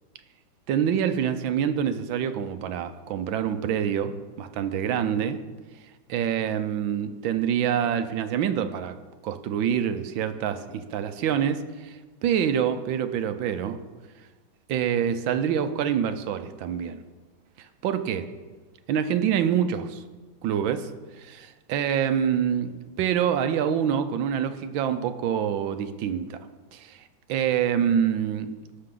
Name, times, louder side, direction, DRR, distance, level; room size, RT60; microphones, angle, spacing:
voice 1, 0.7-4.1 4.4-5.4 6.1-13.8 14.7-17.0 17.8-18.2 18.9-20.0 20.4-20.9 21.2-26.4 26.7-27.0 27.3-28.5, right 8 dB, 80° right, 10 dB, 1.4 m, -26 dB
18.0 x 6.6 x 3.8 m, 1.3 s
omnidirectional pair, 2.2 m